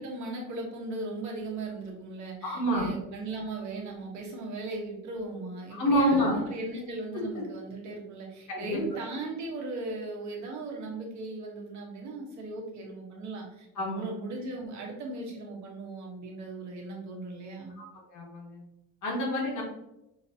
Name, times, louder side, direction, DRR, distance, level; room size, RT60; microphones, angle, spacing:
voice 1, 0.0-17.8, right 2 dB, 55° right, -1 dB, 1.2 m, -37 dB
voice 2, 2.4-2.9 5.7-6.3 8.5-8.8 13.8-14.0 18.1-18.6 19.0-19.6, equal, 60° left, -2 dB, 1.6 m, -27 dB
5.8 x 2.9 x 2.8 m, 0.90 s
cardioid pair, 170°, 35 cm